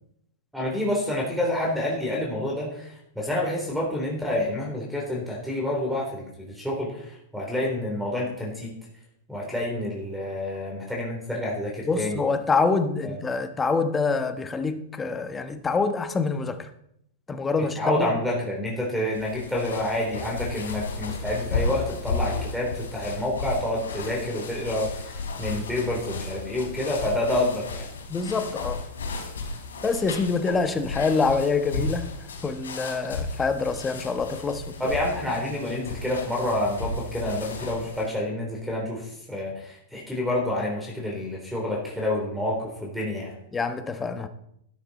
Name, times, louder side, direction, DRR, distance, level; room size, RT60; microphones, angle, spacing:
voice 1, 0.5-8.7 9.3-12.2 13.0-13.2 17.8-27.9 34.8-43.3, left 1 dB, ahead, 3.7 m, -28 dB
voice 2, 11.9-16.7 17.3-18.1 28.1-28.8 29.8-32.1 32.4-34.9 43.5-44.3, left 4 dB, 15° left, 1.2 m, -26 dB
sound 1, 19.1-38.1, left 3 dB, 90° left, 3.1 m, -34 dB
12.5 x 11.0 x 4.3 m
hypercardioid pair, 120°, 0 cm